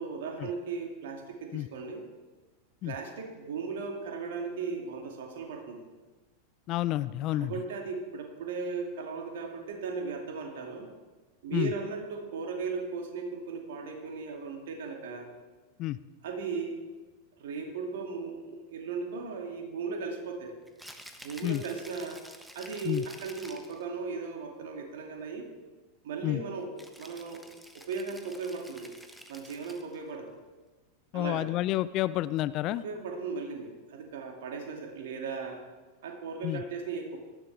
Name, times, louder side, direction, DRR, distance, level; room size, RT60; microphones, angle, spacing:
voice 1, 0.0-2.0 2.8-5.9 7.3-10.9 11.4-15.3 16.2-16.8 17.4-20.6 21.2-22.2 22.5-25.5 26.0-27.5 27.7-29.0 29.3-30.4 31.1-31.5 32.7-35.6 36.0-37.2, right 4 dB, 55° right, 2 dB, 2.4 m, -37 dB
voice 2, 6.7-7.5 11.5-11.7 15.8-16.0 21.4-21.6 22.9-23.0 26.2-26.4 31.1-32.8 36.4-36.6, left 15 dB, 35° left, 17 dB, 0.4 m, -29 dB
Rattle (instrument), 20.7-23.8 26.8-30.0, equal, ahead, 1.2 m, -50 dB
18.5 x 13.5 x 3.4 m, 1.3 s
figure-of-eight pair, 90°, 0 cm